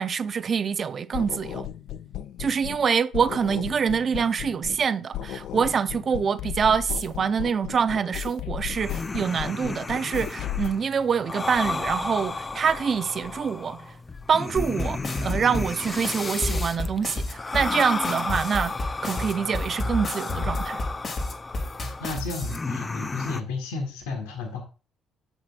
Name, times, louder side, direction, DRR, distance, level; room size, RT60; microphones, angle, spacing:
voice 1, 0.0-1.7 2.4-13.9 14.3-18.7 19.0-20.8, right 6 dB, 50° right, 0.5 m, -25 dB
sound 1, 1.1-2.9 3.1-4.9 5.1-10.7, left 11 dB, 70° left, 0.4 m, -35 dB
sound 2, 8.6-23.4, left 3 dB, 30° left, 0.6 m, -33 dB
sound 3, 14.6-22.6, left 2 dB, 55° left, 2.4 m, -30 dB
voice 2, 22.0-24.6, left 3 dB, 90° left, 1.6 m, -32 dB
8.9 x 7.5 x 2.5 m
hypercardioid pair, 55°, 0 cm